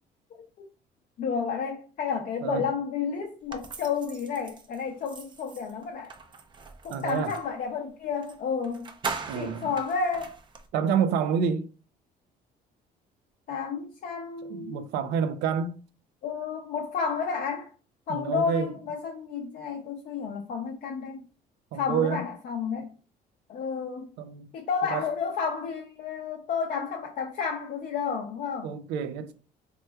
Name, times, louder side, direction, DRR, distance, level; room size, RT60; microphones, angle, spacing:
voice 1, 1.2-6.1 6.8-8.9 9.3-10.4 13.5-14.9 16.2-17.7 18.1-21.2 21.7-22.9 23.5-24.1 24.5-28.7, left 6 dB, 55° left, 0.5 m, -31 dB
sound 1, 3.5-7.5 8.2-8.4 8.6-10.7, right 4 dB, 30° right, 0.4 m, -40 dB
voice 2, 6.9-7.3 9.3-9.7 10.7-11.7 14.5-15.8 18.1-18.7 21.7-22.2 24.2-24.5 24.9-25.0 28.6-29.3, right 7 dB, 90° right, 0.4 m, -28 dB
3.2 x 3.0 x 2.2 m
cardioid pair, 110°, 17 cm